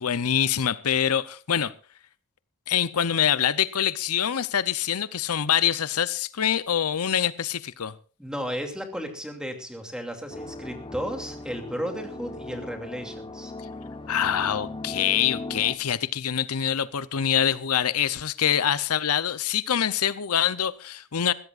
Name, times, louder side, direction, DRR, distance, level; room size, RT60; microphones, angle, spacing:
voice 1, 0.0-1.7 2.7-7.9 14.1-21.3, left 9 dB, 90° left, 0.7 m, -25 dB
voice 2, 8.2-13.5, equal, 5° right, 2.6 m, -34 dB
sound 1, 10.3-15.8, left 2 dB, 25° left, 1.1 m, -38 dB
21.5 x 15.5 x 2.5 m
head